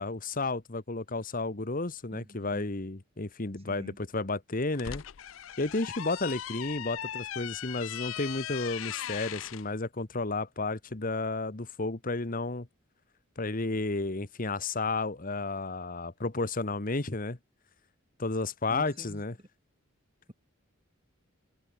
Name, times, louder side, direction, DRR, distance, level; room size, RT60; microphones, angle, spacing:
voice 1, 0.0-5.0 5.6-12.7 13.4-17.4 18.2-19.3, left 3 dB, 40° left, 1.3 m, -32 dB
voice 2, 2.1-2.7 3.7-4.0 18.7-19.5, equal, 30° right, 3.6 m, -47 dB
sound 1, 4.5-9.6, left 11 dB, 65° left, 0.5 m, -39 dB
head